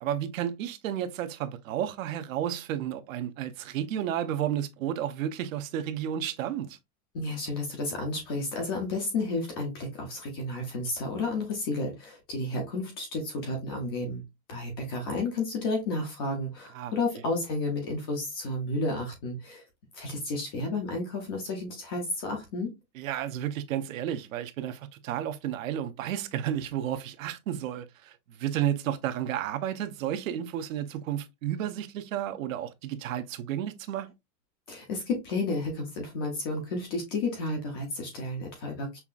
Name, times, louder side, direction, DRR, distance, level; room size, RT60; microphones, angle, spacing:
voice 1, 0.0-6.8 16.7-16.9 23.0-34.1, right 10 dB, 70° right, 0.7 m, -32 dB
voice 2, 7.1-19.6 19.9-22.7 34.7-39.0, left 2 dB, 20° left, 0.3 m, -32 dB
5.6 x 2.4 x 2.3 m
supercardioid pair, 160°, 42 cm